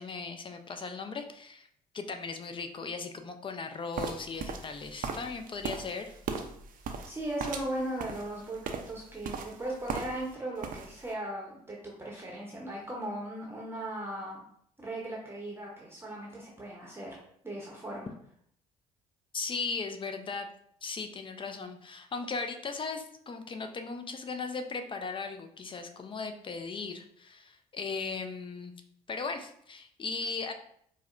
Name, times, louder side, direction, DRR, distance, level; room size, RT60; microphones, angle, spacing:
voice 1, 0.0-1.7 1.9-6.1 19.3-20.5 20.8-28.7 29.1-30.5, left 4 dB, 25° left, 7 dB, 0.5 m, -37 dB
sound 1, 3.9-10.3 10.6-11.1, right 5 dB, 45° right, 0.5 m, -38 dB
voice 2, 7.0-14.4 14.8-17.2 17.4-18.1, right 1 dB, 10° right, -3 dB, 0.8 m, -38 dB
4.7 x 2.1 x 2.5 m, 0.67 s
figure-of-eight pair, 50°, 20 cm